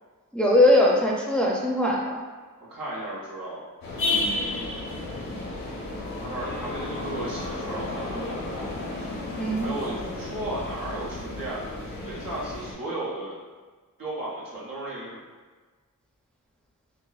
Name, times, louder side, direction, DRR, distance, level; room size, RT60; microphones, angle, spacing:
voice 1, 0.3-2.2 4.1-4.3 9.4-9.7, left 1 dB, 5° left, -3 dB, 0.5 m, -21 dB
voice 2, 2.7-3.6 6.2-8.4 9.6-13.4 14.0-15.2, right 1 dB, 80° right, -6 dB, 1.1 m, -35 dB
sound 1, 3.8-12.7, left 2 dB, 90° left, 1.0 m, -32 dB
6.1 x 2.1 x 2.4 m, 1.4 s
wide cardioid pair, 90°, 33 cm